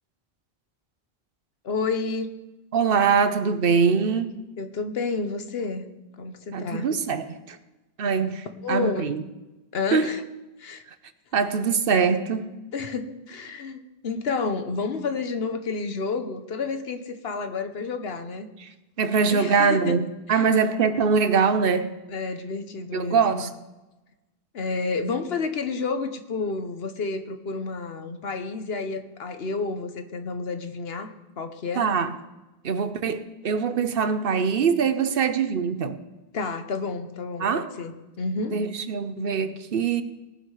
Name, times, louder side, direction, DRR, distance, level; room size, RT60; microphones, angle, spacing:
voice 1, 1.6-2.4 4.6-5.9 6.2-6.9 8.6-9.1 9.7-10.2 10.6-10.8 12.7-18.5 19.3-20.0 20.3-20.5 22.1-23.5 24.5-31.9 36.3-38.6, left 4 dB, 75° left, 1.2 m, -30 dB
voice 2, 2.7-4.3 6.5-7.6 8.0-9.2 9.9-10.1 11.3-12.5 18.6-18.7 19.0-22.0 22.9-23.5 31.8-32.1 32.6-36.0 37.4-37.7 38.5-40.0, right 5 dB, 65° right, 0.9 m, -23 dB
18.5 x 6.4 x 4.8 m
omnidirectional pair, 1.0 m